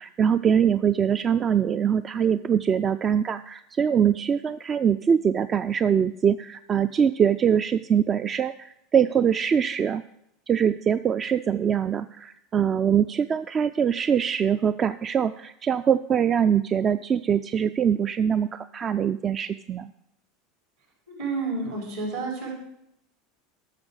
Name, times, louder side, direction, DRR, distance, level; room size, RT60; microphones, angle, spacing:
voice 1, 0.0-10.0 10.5-19.9, right 8 dB, 30° right, 13 dB, 0.3 m, -23 dB
voice 2, 21.2-22.5, right 3 dB, 70° right, -2 dB, 5.0 m, -30 dB
13.0 x 6.6 x 4.8 m, 0.80 s
figure-of-eight pair, 80°, 0 cm